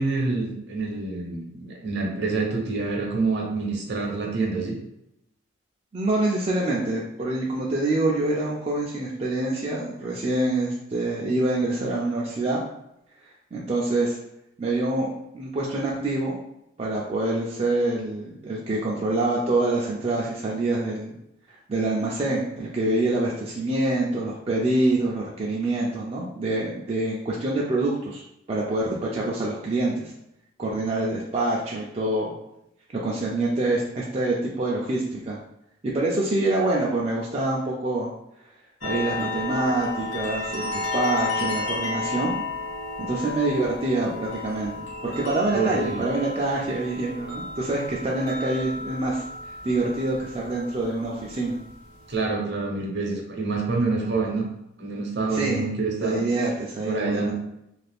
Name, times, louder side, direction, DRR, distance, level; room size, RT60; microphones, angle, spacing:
voice 1, 0.0-4.8 45.5-46.0 52.1-54.5 54.8-56.2 56.8-57.3, right 3 dB, 55° right, 0 dB, 0.7 m, -27 dB
voice 2, 5.9-12.6 13.2-14.2 14.6-16.4 16.8-21.1 21.5-28.2 28.5-30.1 30.6-32.3 33.0-35.4 35.8-38.1 38.8-42.3 43.0-49.2 49.6-51.6 55.3-55.6 56.0-57.3, right 2 dB, 30° right, -4 dB, 0.3 m, -26 dB
sound 1, 38.8-52.2, left 3 dB, 70° left, 1.0 m, -33 dB
2.4 x 2.4 x 3.3 m, 0.82 s
head